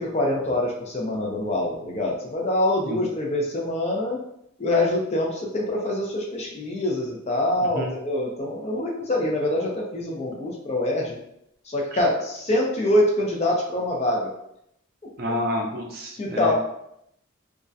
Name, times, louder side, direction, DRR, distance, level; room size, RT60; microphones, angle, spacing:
voice 1, 0.0-4.2 4.6-11.2 11.7-14.3 16.2-16.5, left 1 dB, 30° left, -1 dB, 0.4 m, -25 dB
voice 2, 15.2-16.5, equal, 45° right, 0 dB, 0.4 m, -29 dB
2.3 x 2.1 x 2.6 m, 0.77 s
head